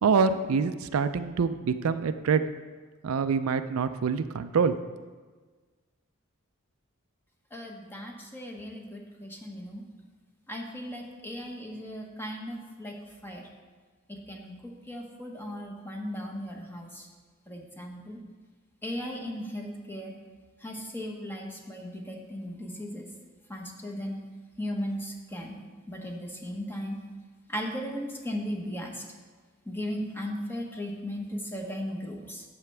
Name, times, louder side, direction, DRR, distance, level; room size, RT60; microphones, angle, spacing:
voice 1, 0.0-2.4 3.0-4.7, right 5 dB, 80° right, 11 dB, 0.4 m, -25 dB
voice 2, 7.5-9.8 10.5-13.0 13.2-13.5 14.1-17.1 17.5-18.2 18.8-20.2 20.6-23.1 23.5-24.2 24.6-25.6 25.9-27.0 27.5-29.0 29.7-32.4, equal, 10° left, 1 dB, 1.1 m, -37 dB
11.5 x 7.6 x 3.4 m, 1.4 s
head